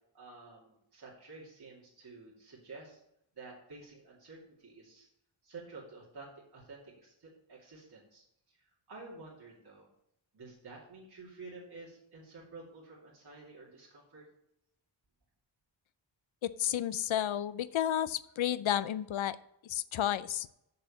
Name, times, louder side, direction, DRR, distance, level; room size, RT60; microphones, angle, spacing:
voice 1, 0.1-3.0 3.4-5.1 5.4-9.9 10.3-14.2, right 3 dB, 55° right, -5 dB, 2.7 m, -51 dB
voice 2, 16.4-19.4 19.6-20.5, left 11 dB, 85° left, 16 dB, 0.6 m, -32 dB
6.9 x 6.7 x 7.0 m, 0.79 s
wide cardioid pair, 110°, 46 cm